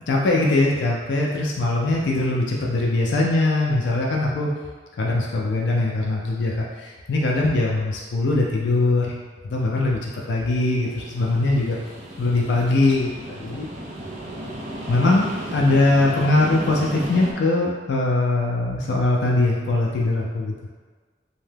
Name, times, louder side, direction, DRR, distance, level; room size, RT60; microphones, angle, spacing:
voice 1, 0.1-4.5 5.0-11.8 12.2-13.7 14.9-20.5, left 2 dB, 70° left, -2 dB, 0.4 m, -21 dB
sound 1, 10.3-17.3, right 1 dB, 45° right, 0.4 m, -35 dB
2.7 x 2.2 x 3.3 m, 1.5 s
head